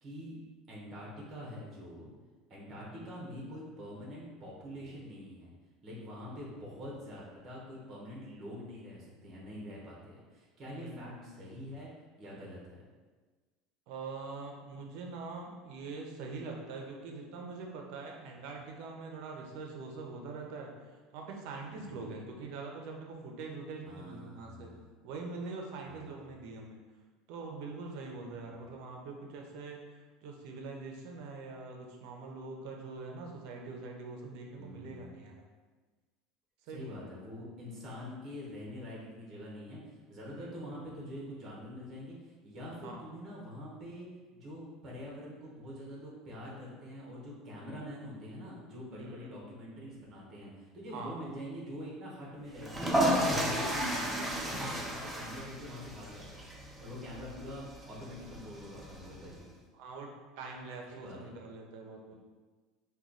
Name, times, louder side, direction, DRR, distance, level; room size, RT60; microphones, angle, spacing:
voice 1, 0.0-0.4 0.7-2.1 2.5-5.5 5.8-11.9 12.2-12.7 21.7-22.2 23.8-24.9 25.8-26.3 28.3-28.6 34.5-35.2 36.7-44.1 44.3-56.4 56.8-59.4 60.9-61.3 62.1-62.2, equal, 30° right, -4 dB, 1.0 m, -45 dB
voice 2, 10.7-11.3 13.9-20.7 21.1-24.7 25.0-26.8 27.3-29.8 30.2-35.4 36.7-37.1 40.4-40.6 42.8-43.2 49.0-49.3 50.9-51.2 59.7-60.1 60.4-62.1, right 3 dB, 65° right, 1 dB, 0.6 m, -43 dB
sound 1, 52.6-59.4, equal, 10° right, 0.5 m, -33 dB
3.0 x 2.3 x 3.8 m, 1.3 s
cardioid pair, 150°, 0 cm